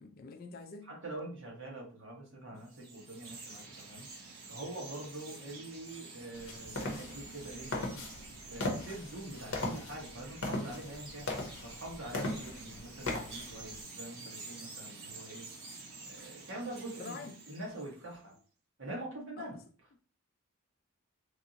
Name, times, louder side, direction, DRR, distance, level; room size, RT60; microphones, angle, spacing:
voice 1, 0.0-0.9 1.2-1.3 17.0-17.4 19.4-19.6, left 4 dB, 40° left, 0.3 m, -46 dB
voice 2, 0.9-4.1 4.5-7.8 8.5-11.3 11.6-15.5 16.0-17.2 17.5-18.3 18.8-19.6, right 1 dB, 55° right, 1.2 m, -44 dB
Chirp tweet, 2.6-18.2, right 3 dB, 75° right, 1.0 m, -49 dB
sound 1, 6.4-13.8, left 2 dB, 60° left, 0.8 m, -39 dB
3.4 x 2.5 x 2.8 m
head